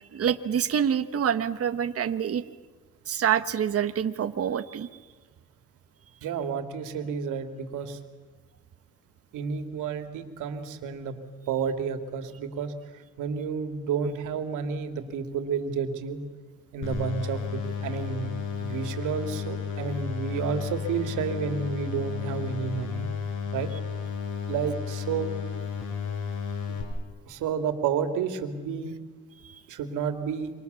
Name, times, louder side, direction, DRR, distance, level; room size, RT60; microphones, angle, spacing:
voice 1, 0.1-2.4 3.1-4.9 29.4-29.6, right 8 dB, 50° right, 9 dB, 1.3 m, -26 dB
voice 2, 6.2-8.0 9.3-11.1 11.5-12.7 13.2-16.2 16.7-18.3 18.6-23.1 23.5-23.7 24.5-25.3 26.7-26.8 27.3-28.9 29.7-30.5, right 6 dB, 90° right, 7 dB, 2.9 m, -30 dB
sound 1, 16.8-26.8, left 6 dB, 80° left, 6.8 m, -33 dB
28.5 x 25.5 x 7.1 m, 1.4 s
cardioid pair, 90°, 30 cm